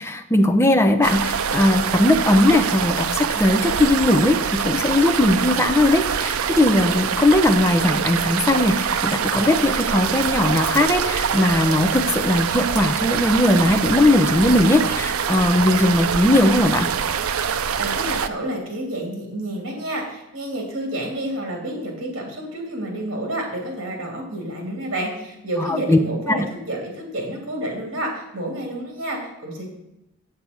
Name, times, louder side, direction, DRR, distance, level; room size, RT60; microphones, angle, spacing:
voice 1, 0.0-16.9 25.6-26.0 26.3-26.5, left 1 dB, 10° left, 6 dB, 0.6 m, -19 dB
sound 1, 1.0-18.3, right 7 dB, 80° right, 0.5 m, -24 dB
voice 2, 17.8-29.7, right 1 dB, 60° right, 0 dB, 3.1 m, -29 dB
8.0 x 7.1 x 6.1 m, 0.90 s
head